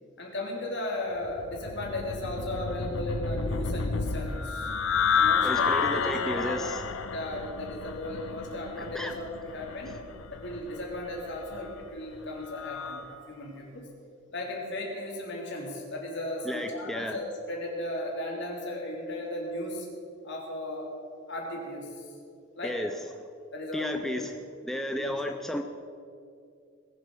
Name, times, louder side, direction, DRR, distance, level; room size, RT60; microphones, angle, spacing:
voice 1, 0.2-4.7 5.2-6.6 7.1-10.0 10.3-13.9 14.3-19.9 20.2-20.9 21.3-22.1 22.6-22.8 23.5-24.1 25.0-25.2, left 1 dB, 60° left, -2 dB, 3.6 m, -36 dB
sound 1, 1.2-13.1, left 6 dB, 85° left, 0.8 m, -31 dB
voice 2, 5.4-6.8 8.9-9.1 16.4-17.2 22.6-22.9 23.7-24.4 24.6-25.6, equal, ahead, 4 dB, 0.6 m, -33 dB
20.5 x 7.9 x 6.5 m, 2.4 s
head